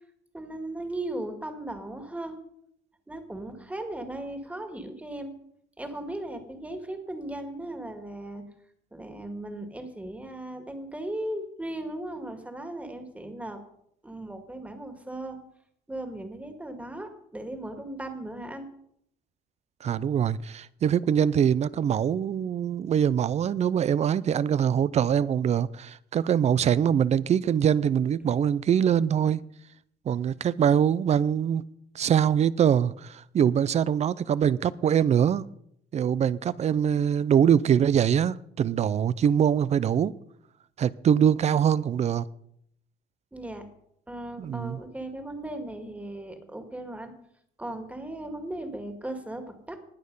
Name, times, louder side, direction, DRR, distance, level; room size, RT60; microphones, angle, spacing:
voice 1, 0.3-2.4 3.1-5.3 5.8-8.4 8.9-13.6 14.0-15.4 15.9-18.7 43.3-43.7 44.1-47.1 47.6-49.8, right 1 dB, 10° right, 2.0 m, -37 dB
voice 2, 19.8-29.4 30.1-31.6 31.9-35.5 35.9-40.1 40.8-42.2 44.4-44.8, right 8 dB, 40° right, 0.5 m, -23 dB
19.5 x 6.5 x 5.4 m
cardioid pair, 110°, 17 cm